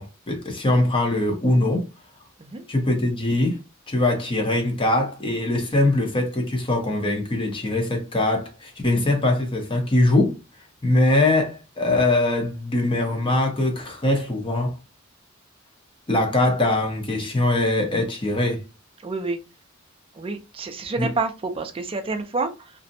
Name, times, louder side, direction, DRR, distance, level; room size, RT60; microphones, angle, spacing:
voice 1, 0.0-1.9 2.7-3.6 3.9-10.4 10.8-14.8 16.1-18.6 21.0-21.1, left 2 dB, 25° left, 0.7 m, -22 dB
voice 2, 19.0-19.4 20.1-22.7, right 3 dB, 25° right, 0.4 m, -28 dB
2.5 x 2.0 x 2.6 m
head